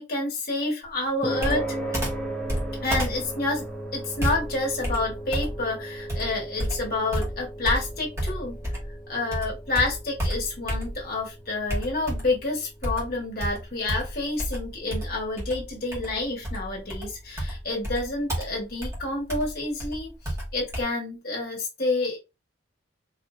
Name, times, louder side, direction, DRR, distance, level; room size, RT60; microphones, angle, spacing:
voice 1, 0.0-1.7 2.8-3.7 3.9-8.6 9.1-20.1 20.5-22.2, left 2 dB, 50° left, 1.4 m, -29 dB
sound 1, 1.2-17.7, right 1 dB, 5° left, 0.7 m, -38 dB
Computer keyboard, 1.4-9.0 9.3-11.2 11.7-12.4 12.8-20.8, equal, 15° right, 1.3 m, -31 dB
4.1 x 2.6 x 2.4 m
head